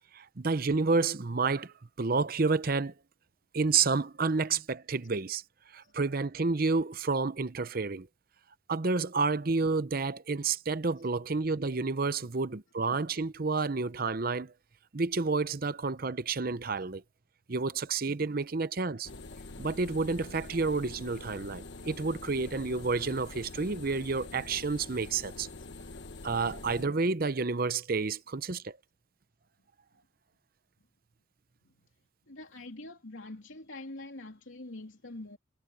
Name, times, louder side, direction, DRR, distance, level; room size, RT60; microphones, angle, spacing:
voice 1, 0.1-2.9 3.5-5.4 5.7-8.1 8.7-14.5 14.9-17.0 17.5-19.1 19.6-25.5 26.2-28.7, right 4 dB, 50° right, 0.8 m, -30 dB
sound 1, 19.0-26.8, left 3 dB, 65° left, 1.3 m, -45 dB
voice 2, 25.6-25.9 31.6-31.7 32.3-35.4, left 2 dB, 85° left, 2.9 m, -45 dB
head